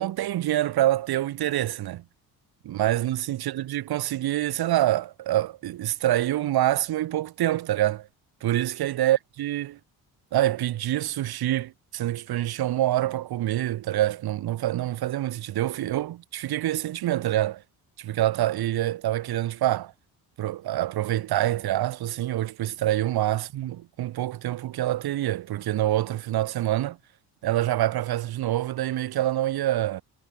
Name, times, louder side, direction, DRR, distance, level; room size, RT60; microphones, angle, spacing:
voice 1, 0.0-2.0 2.6-8.1 8.4-9.8 10.3-17.6 18.0-19.9 20.4-27.0 27.4-30.0, right 14 dB, 70° right, 1.7 m, -26 dB
cardioid pair, 135°, 38 cm